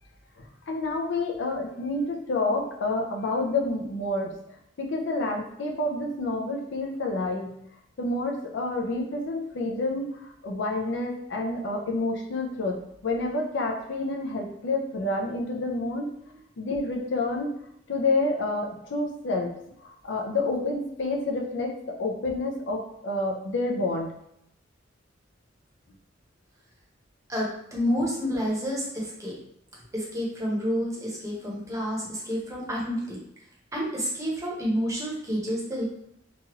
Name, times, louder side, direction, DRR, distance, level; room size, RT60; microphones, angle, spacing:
voice 1, 0.4-4.3 4.8-7.6 8.0-10.2 10.4-12.8 13.0-16.1 16.6-17.6 17.9-19.5 19.8-24.1, left 2 dB, 70° left, 1 dB, 0.5 m, -28 dB
voice 2, 27.3-29.4 29.9-33.2 33.7-35.8, equal, 15° right, -4 dB, 0.8 m, -29 dB
3.0 x 2.3 x 3.0 m, 0.75 s
head